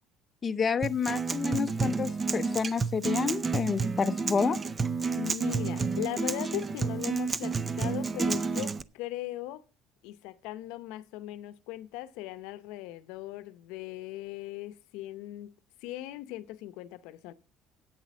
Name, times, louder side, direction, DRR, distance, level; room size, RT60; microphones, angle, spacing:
voice 1, 0.4-4.6, left 6 dB, 25° left, 0.6 m, -29 dB
Acoustic guitar, 0.8-8.8, right 4 dB, 25° right, 0.5 m, -30 dB
voice 2, 5.1-9.6 10.0-15.5 15.8-17.3, left 15 dB, 90° left, 0.7 m, -39 dB
8.9 x 7.5 x 7.1 m
cardioid pair, 130°, 0 cm